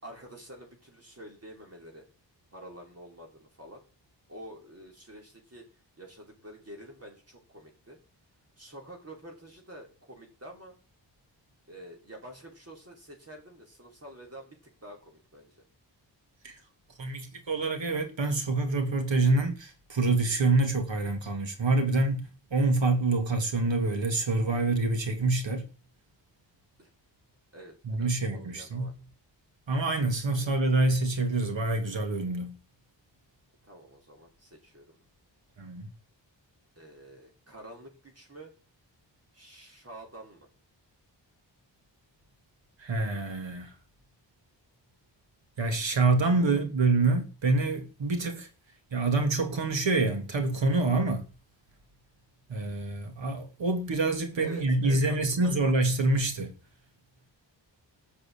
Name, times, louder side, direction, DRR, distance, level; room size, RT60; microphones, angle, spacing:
voice 1, 0.0-2.0 2.5-3.8 4.3-5.6 6.0-8.0 8.6-10.7 11.7-15.6 26.8-26.9 27.5-28.9 30.3-30.5 33.6-35.0 36.8-38.5 39.3-40.5 46.4-46.6 54.4-55.6, right 1 dB, 35° right, 5.5 m, -48 dB
voice 2, 17.0-25.7 27.8-28.9 29.7-32.6 35.6-35.9 42.8-43.7 45.6-48.5 48.9-51.2 52.5-56.5, right 2 dB, 80° right, 3.2 m, -26 dB
13.5 x 6.8 x 9.0 m
wide cardioid pair, 115°, 44 cm